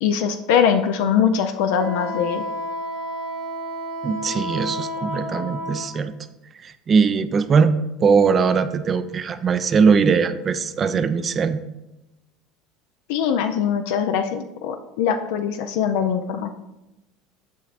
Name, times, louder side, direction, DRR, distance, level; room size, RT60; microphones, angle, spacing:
voice 1, 0.0-2.4 13.1-16.5, left 7 dB, 75° left, 7 dB, 0.4 m, -22 dB
Wind instrument woodwind instrument, 1.8-5.9, equal, 60° right, 1.6 m, -30 dB
voice 2, 4.0-6.1 6.6-11.6, right 5 dB, 35° right, 11 dB, 0.4 m, -20 dB
7.1 x 5.7 x 2.5 m, 0.96 s
hypercardioid pair, 85°, 0 cm